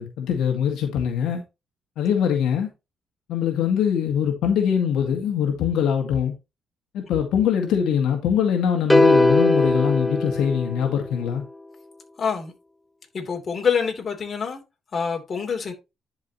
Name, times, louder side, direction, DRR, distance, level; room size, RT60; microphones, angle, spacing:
voice 1, 0.0-1.4 2.0-2.7 3.3-6.3 6.9-11.4, left 8 dB, 85° left, 1.7 m, -23 dB
Em - Piano Chord, 8.9-11.2, left 2 dB, 10° left, 0.6 m, -19 dB
voice 2, 12.2-12.5 13.1-14.6 14.9-15.7, left 6 dB, 40° left, 3.1 m, -26 dB
10.5 x 4.8 x 2.9 m
cardioid pair, 90°, 0 cm